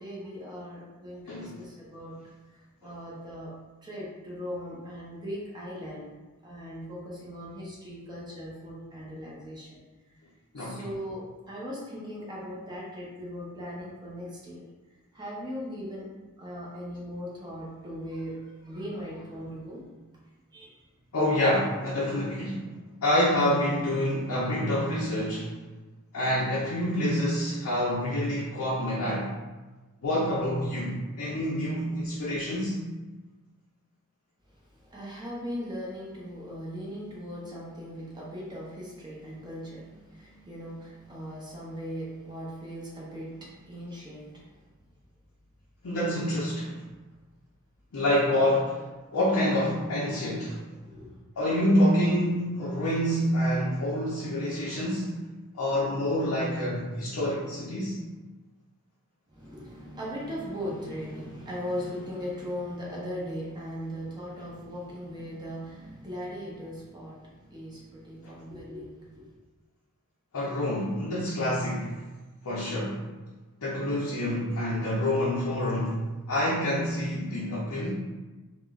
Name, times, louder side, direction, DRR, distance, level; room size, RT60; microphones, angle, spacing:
voice 1, 0.0-2.2 2.5-3.5 3.8-6.1 6.4-9.8 10.6-14.6 15.1-16.1 16.4-19.9 20.5-20.8 34.7-44.6 50.8-51.2 59.3-69.3, equal, 20° right, -6 dB, 0.6 m, -39 dB
voice 2, 21.1-22.6 23.0-25.5 26.1-29.3 30.0-32.8 45.8-46.8 47.9-48.8 49.1-50.6 51.4-55.2 55.5-57.9 70.3-71.9 72.4-73.0 73.6-76.0 76.3-77.9, left 1 dB, 70° left, -6 dB, 0.5 m, -27 dB
3.6 x 2.1 x 2.3 m, 1.2 s
head